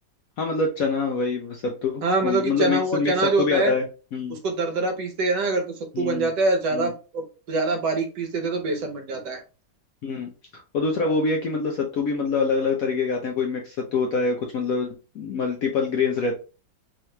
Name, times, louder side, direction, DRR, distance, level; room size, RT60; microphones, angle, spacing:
voice 1, 0.4-3.9 4.1-4.4 5.9-6.3 6.7-6.9 10.0-10.3 10.7-16.3, left 4 dB, 70° left, 2 dB, 0.8 m, -25 dB
voice 2, 2.0-3.7 4.3-5.6 6.0-9.4, right 3 dB, 70° right, 5 dB, 1.4 m, -24 dB
3.7 x 3.0 x 3.2 m, 0.34 s
omnidirectional pair, 2.0 m